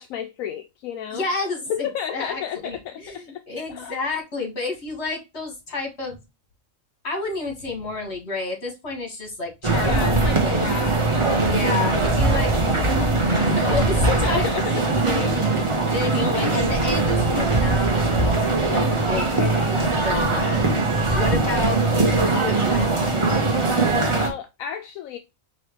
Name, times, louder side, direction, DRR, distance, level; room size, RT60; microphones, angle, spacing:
voice 1, 0.0-1.3 1.7-3.4 3.7-3.9 9.7-11.7 11.9-13.5 14.1-15.0 15.9-16.0 19.1-19.8 21.3-21.5 24.1-25.2, left 9 dB, 80° left, 1.0 m, -33 dB
voice 2, 1.1-6.2 7.0-10.6 11.5-12.5 13.4-14.5 15.0-19.2 20.0-20.7 21.1-23.6, left 3 dB, 55° left, 1.9 m, -30 dB
sound 1, 9.6-24.3, right 3 dB, 25° right, 0.9 m, -21 dB
4.8 x 3.2 x 2.9 m
omnidirectional pair, 1.4 m